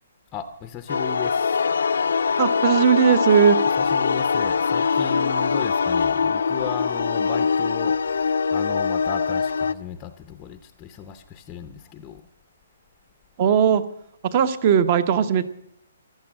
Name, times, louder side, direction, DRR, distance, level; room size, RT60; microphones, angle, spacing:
voice 1, 0.3-1.7 3.8-12.3, left 7 dB, 15° left, 9 dB, 0.6 m, -35 dB
sound 1, 0.9-9.7, left 5 dB, 80° left, 0.6 m, -22 dB
voice 2, 2.4-3.6 13.4-13.8 14.2-15.4, right 8 dB, 30° right, 14 dB, 0.9 m, -18 dB
15.0 x 12.0 x 7.4 m, 0.77 s
hypercardioid pair, 165°, 0 cm